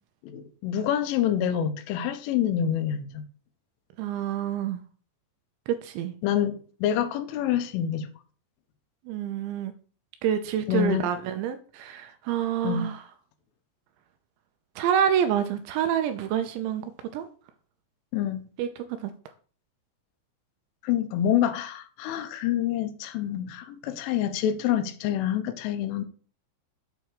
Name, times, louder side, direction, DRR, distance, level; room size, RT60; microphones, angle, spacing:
voice 1, 0.2-3.2 6.2-8.1 10.7-11.1 12.6-12.9 18.1-18.4 20.8-26.0, left 10 dB, 80° left, 3.2 m, -27 dB
voice 2, 4.0-4.8 5.8-6.1 9.1-9.7 10.2-13.0 14.8-17.3 18.6-18.7 19.0-19.1, right 9 dB, 80° right, 2.7 m, -27 dB
8.4 x 3.4 x 6.4 m
omnidirectional pair, 5.7 m